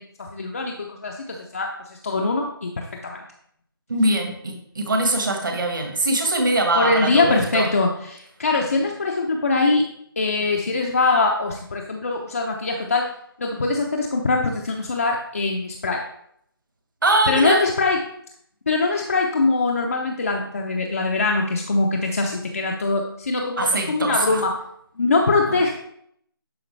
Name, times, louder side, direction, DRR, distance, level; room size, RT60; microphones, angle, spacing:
voice 1, 0.0-3.2 6.7-9.9 10.2-13.1 13.4-16.0 17.3-18.1 18.7-24.6 25.0-25.7, left 3 dB, 35° left, 1 dB, 0.7 m, -22 dB
voice 2, 3.9-7.7 17.0-17.6 23.6-24.4 25.5-25.6, right 2 dB, 55° right, 3 dB, 1.6 m, -22 dB
11.0 x 3.9 x 3.3 m, 0.70 s
figure-of-eight pair, 170°, 13 cm